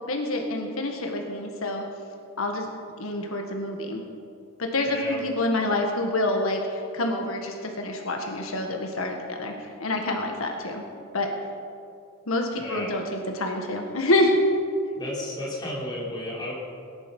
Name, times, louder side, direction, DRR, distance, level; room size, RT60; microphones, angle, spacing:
voice 1, 0.1-1.8 2.4-2.7 3.0-4.0 4.6-10.8 11.1-11.3 12.3-14.4, left 2 dB, 85° left, 2 dB, 1.6 m, -27 dB
voice 2, 4.8-5.2 12.6-12.9 14.9-16.5, left 1 dB, 20° left, -5 dB, 3.3 m, -33 dB
17.5 x 10.5 x 5.4 m, 2.4 s
head